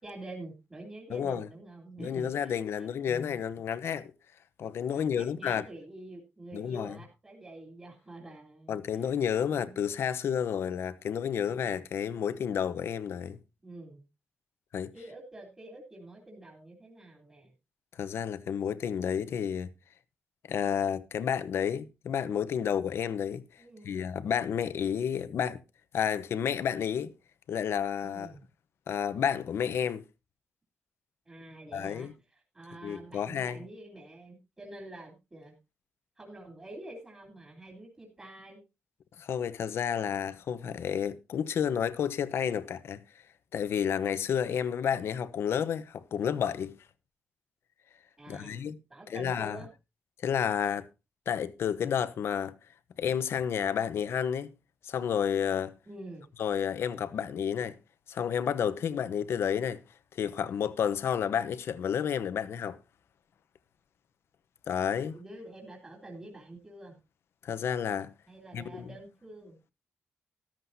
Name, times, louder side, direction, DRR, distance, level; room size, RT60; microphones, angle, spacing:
voice 1, 0.0-2.9 4.9-9.2 9.5-9.8 13.6-14.0 14.9-17.5 23.6-24.0 28.0-28.4 31.2-35.5 36.2-38.6 48.2-48.6 48.9-49.7 55.9-56.3 65.1-67.0 68.3-69.6, right 1 dB, 20° right, 3.1 m, -47 dB
voice 2, 1.1-1.5 2.0-4.1 4.6-5.6 6.5-7.0 8.7-13.4 14.7-14.9 18.0-19.7 20.5-25.6 25.9-27.1 27.5-28.3 28.9-30.0 31.7-32.1 32.8-33.6 39.2-43.0 43.5-46.7 48.3-48.8 49.1-49.6 50.2-50.9 51.3-52.5 53.0-54.5 54.8-55.7 56.4-57.8 58.1-59.8 60.1-62.8 64.7-65.2 67.4-68.1 68.5-68.9, left 8 dB, 70° left, 1.0 m, -31 dB
14.0 x 13.0 x 2.7 m
wide cardioid pair, 155°, 4 cm